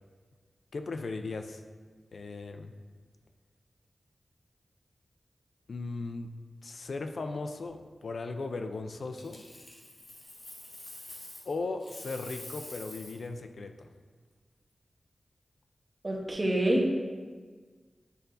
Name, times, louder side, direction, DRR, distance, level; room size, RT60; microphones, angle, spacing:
voice 1, 0.7-1.6 2.1-2.8 5.7-6.3 6.6-9.4 11.4-13.9, left 3 dB, 75° left, 6 dB, 0.4 m, -37 dB
Coin (dropping), 9.2-11.5 11.8-13.3 16.1-16.3, left 1 dB, 50° left, 1.4 m, -47 dB
voice 2, 16.0-16.9, right 1 dB, 30° right, -1 dB, 1.1 m, -26 dB
9.1 x 4.0 x 3.9 m, 1.5 s
wide cardioid pair, 95°, 0 cm